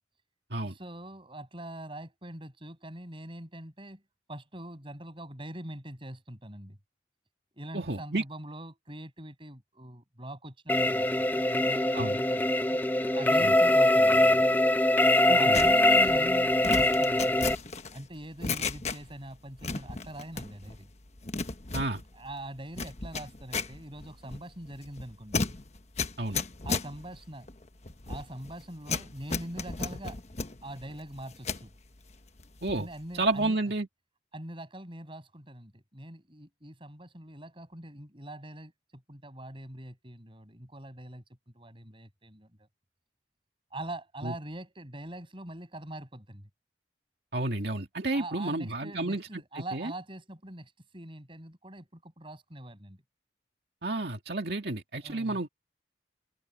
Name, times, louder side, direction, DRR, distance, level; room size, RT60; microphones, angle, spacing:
voice 1, 0.6-4.0 4.3-6.8 7.6-12.8 13.1-14.4 15.3-17.6 17.9-20.9 22.1-25.6 26.6-27.5 28.1-30.2 30.6-31.7 32.8-33.6 34.3-41.2 41.5-42.7 43.7-46.5 48.1-53.0 55.0-55.4, right 1 dB, 30° right, 6.7 m, -43 dB
voice 2, 7.7-8.2 11.9-12.2 13.4-13.5 15.3-15.6 21.7-22.0 26.2-26.4 32.6-32.9 33.1-33.9 44.2-44.3 47.3-49.9 53.8-55.5, right 2 dB, 65° right, 2.3 m, -31 dB
sound 1, 10.7-17.6, left 1 dB, 10° left, 0.9 m, -23 dB
sound 2, 15.5-19.3 19.6-20.8 21.1-31.7 32.1-32.9 33.2-33.5, left 4 dB, 40° left, 1.2 m, -35 dB
head